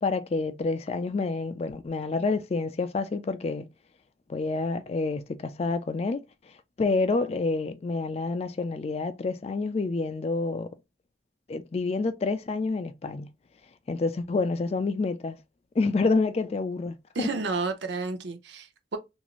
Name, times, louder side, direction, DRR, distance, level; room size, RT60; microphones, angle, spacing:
voice 1, 0.0-3.7 4.3-10.7 11.5-13.3 13.9-15.4 15.8-17.3, left 3 dB, 35° left, 0.3 m, -28 dB
voice 2, 17.1-19.0, right 3 dB, 80° right, 0.6 m, -31 dB
3.0 x 2.5 x 2.4 m
head